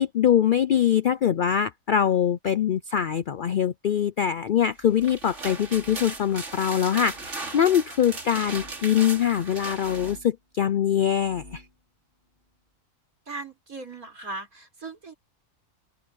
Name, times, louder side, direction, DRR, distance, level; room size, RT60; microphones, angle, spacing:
voice 1, 0.0-11.6, left 9 dB, 70° left, 0.5 m, -23 dB
sound 1, 4.8-10.2, right 3 dB, 60° right, 3.1 m, -37 dB
sound 2, 5.3-6.3 7.0-7.4 8.4-8.8 9.7-10.4 11.1-11.8, left 2 dB, 45° left, 5.1 m, -50 dB
voice 2, 13.3-15.1, right 3 dB, 90° right, 6.1 m, -38 dB
open air
omnidirectional pair, 1.4 m